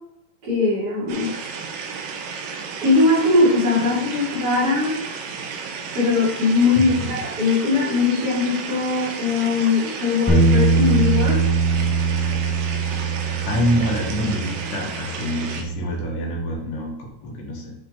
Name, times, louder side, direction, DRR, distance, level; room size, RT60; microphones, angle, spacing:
voice 1, 0.4-1.3 2.8-4.9 5.9-11.4, left 3 dB, 30° right, -7 dB, 3.0 m, -20 dB
sound 1, 1.1-15.6, right 5 dB, 80° right, 2.5 m, -33 dB
voice 2, 6.8-7.3 13.5-17.7, left 1 dB, 85° left, -2 dB, 3.1 m, -26 dB
sound 2, 10.3-16.5, right 3 dB, 15° left, 0.7 m, -22 dB
7.3 x 5.0 x 3.9 m, 0.82 s
omnidirectional pair, 3.7 m